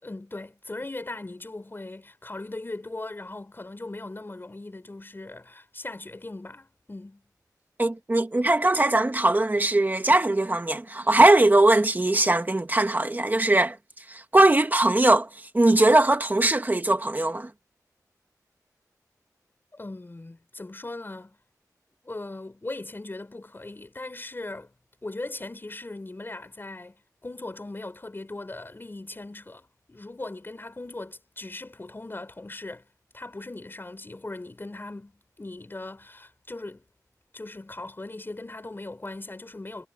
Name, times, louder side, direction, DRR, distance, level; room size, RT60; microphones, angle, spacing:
voice 1, 0.0-7.2 19.7-21.4 22.0-24.7 25.0-32.9 33.1-35.1 35.4-36.9 37.3-39.9, left 2 dB, 35° left, 4.9 m, -39 dB
voice 2, 7.8-13.8 14.1-15.3 15.5-17.5, right 2 dB, 30° right, 1.7 m, -20 dB
wide cardioid pair, 80°, 7 cm